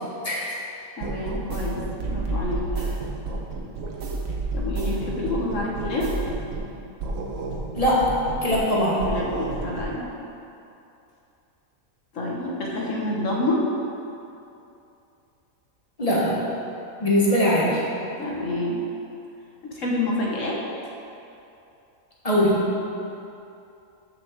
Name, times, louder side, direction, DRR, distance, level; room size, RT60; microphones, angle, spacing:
voice 1, 1.0-1.8 2.1-2.6 4.5-6.4 9.1-10.1 12.1-13.6 18.2-18.8 19.6-20.6, left 1 dB, 65° left, -3 dB, 1.6 m, -28 dB
sound 1, 1.0-6.7 7.0-8.7 9.0-9.9, right 2 dB, 75° right, 1.4 m, -30 dB
voice 2, 7.7-8.2 8.4-9.1 16.0-16.4 17.0-17.8 22.2-22.7, equal, 25° left, -6 dB, 1.6 m, -21 dB
6.8 x 5.9 x 6.6 m, 2.7 s
omnidirectional pair, 1.4 m